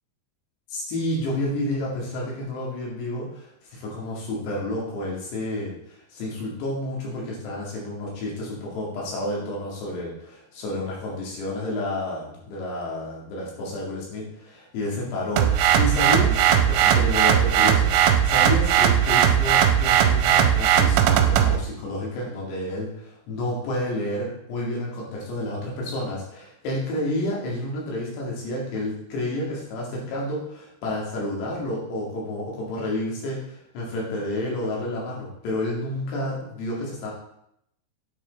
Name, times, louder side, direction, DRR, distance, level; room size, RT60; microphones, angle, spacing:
voice 1, 0.7-37.1, left 1 dB, 80° left, -4 dB, 4.4 m, -30 dB
sound 1, 15.4-21.6, right 9 dB, 85° right, 2.8 m, -18 dB
9.0 x 5.3 x 4.0 m, 0.75 s
omnidirectional pair, 4.9 m